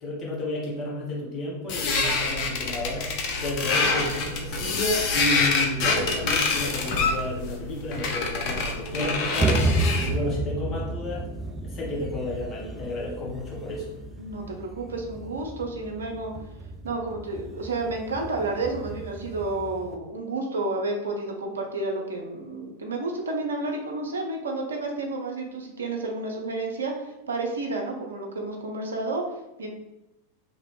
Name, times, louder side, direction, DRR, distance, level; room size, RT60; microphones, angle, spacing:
voice 1, 0.0-3.1 3.4-9.7 10.1-11.3 11.6-13.9, left 1 dB, 25° left, -5 dB, 1.2 m, -31 dB
sound 1, 1.7-10.2, left 4 dB, 40° left, 0.6 m, -26 dB
sound 2, 9.4-20.0, right 2 dB, 15° right, 0.4 m, -32 dB
voice 2, 14.2-16.3 16.8-29.2 29.6-29.7, right 2 dB, 70° right, 1 dB, 0.6 m, -31 dB
2.9 x 2.8 x 3.1 m, 0.96 s
figure-of-eight pair, 90°, 0 cm